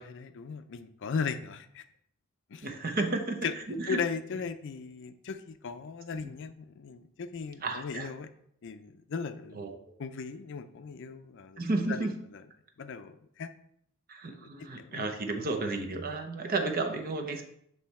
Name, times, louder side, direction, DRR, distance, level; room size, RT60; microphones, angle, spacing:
voice 1, 0.1-1.9 2.5-2.7 3.0-3.1 3.4-3.5 3.9-8.3 8.6-9.6 10.0-11.6 11.9-12.1 12.3-12.4 12.8-13.5 14.3-14.5 14.8-15.0, left 5 dB, 60° left, 10 dB, 0.5 m, -37 dB
voice 2, 2.6-3.4 3.7-4.0 6.2-6.3 7.6-8.1 9.5-9.8 11.6-12.2 14.1-17.4, right 2 dB, 45° right, 5 dB, 0.8 m, -32 dB
7.6 x 3.3 x 4.2 m, 0.69 s
head